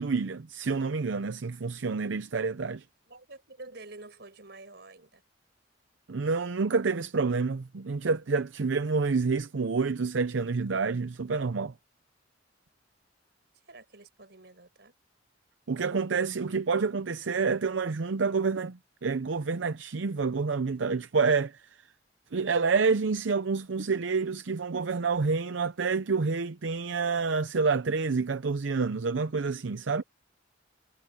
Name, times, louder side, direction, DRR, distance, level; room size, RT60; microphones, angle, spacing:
voice 1, 0.0-2.8 6.1-11.7 15.7-21.6 22.3-30.0, right 4 dB, 80° right, 0.6 m, -28 dB
voice 2, 3.1-5.2 13.7-14.9 29.9-30.0, right 2 dB, 60° right, 5.5 m, -48 dB
head